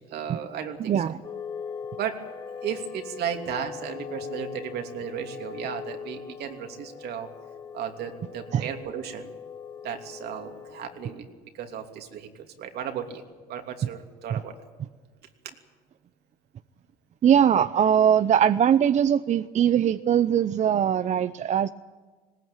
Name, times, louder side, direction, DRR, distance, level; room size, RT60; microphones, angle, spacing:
voice 1, 0.1-1.1 2.0-2.1 2.6-7.3 7.7-9.3 9.8-11.2 11.5-12.3 12.6-13.2 13.5-14.5, right 8 dB, 70° right, 5 dB, 3.0 m, -34 dB
voice 2, 0.8-1.2 8.5-8.6 17.2-21.7, right 9 dB, 45° right, 13 dB, 0.6 m, -21 dB
sound 1, 1.2-11.1, left 7 dB, 30° left, 2.7 m, -40 dB
20.0 x 19.0 x 9.0 m, 1.4 s
cardioid pair, 110°, 17 cm